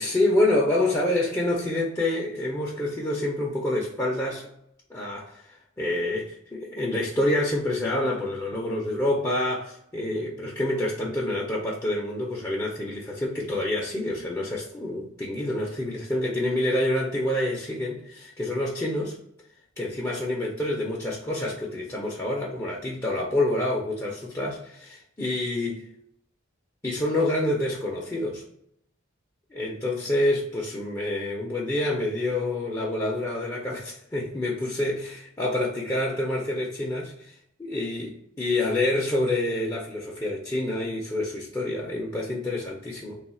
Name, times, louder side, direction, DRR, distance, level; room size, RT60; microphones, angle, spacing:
voice 1, 0.0-4.5 4.9-5.4 5.8-19.2 19.8-25.9 26.8-28.4 29.5-37.3 37.6-43.2, left 1 dB, 15° left, -4 dB, 0.5 m, -27 dB
3.3 x 2.3 x 4.1 m, 0.74 s
head